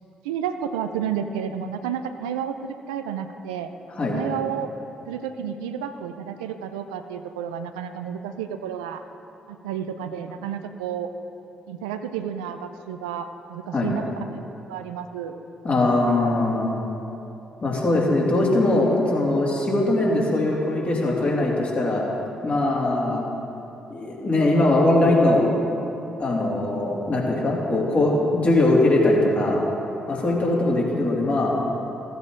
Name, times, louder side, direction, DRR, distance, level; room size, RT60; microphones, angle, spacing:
voice 1, 0.2-3.7 4.1-4.7 5.1-9.0 9.5-11.1 11.7-15.4, right 8 dB, 80° right, 8 dB, 0.4 m, -31 dB
voice 2, 15.6-16.7 17.6-22.0 22.4-23.2 23.9-25.4 26.2-29.6 30.1-31.5, left 2 dB, 40° left, -4 dB, 2.7 m, -21 dB
15.0 x 8.1 x 3.7 m, 2.9 s
figure-of-eight pair, 40°, 4 cm